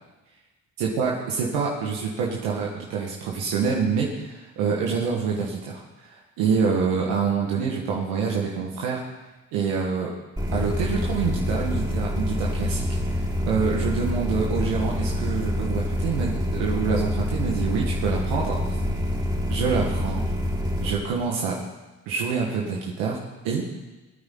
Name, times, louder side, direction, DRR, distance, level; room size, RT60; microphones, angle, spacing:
voice 1, 0.8-9.0 9.5-10.1 10.5-12.9 13.1-18.6 19.5-20.2 20.8-21.6 22.1-23.2 23.4-23.6, right 5 dB, 80° right, -3 dB, 1.8 m, -26 dB
sound 1, 10.4-20.9, left 1 dB, 10° right, 3.5 m, -26 dB
20.0 x 9.2 x 4.0 m, 1.2 s
hypercardioid pair, 45°, 44 cm